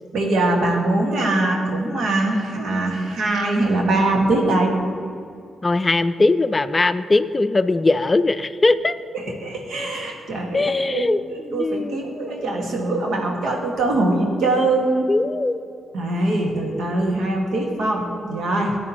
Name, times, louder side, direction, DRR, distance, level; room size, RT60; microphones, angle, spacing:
voice 1, 0.1-4.7 9.1-11.1 11.5-15.1 15.9-18.8, right 2 dB, 70° right, 1 dB, 1.6 m, -22 dB
voice 2, 5.6-9.0 10.5-11.2 11.5-12.0 15.1-15.6, left 2 dB, 30° left, 12 dB, 0.4 m, -20 dB
14.5 x 9.7 x 2.9 m, 2.3 s
hypercardioid pair, 40°, 0 cm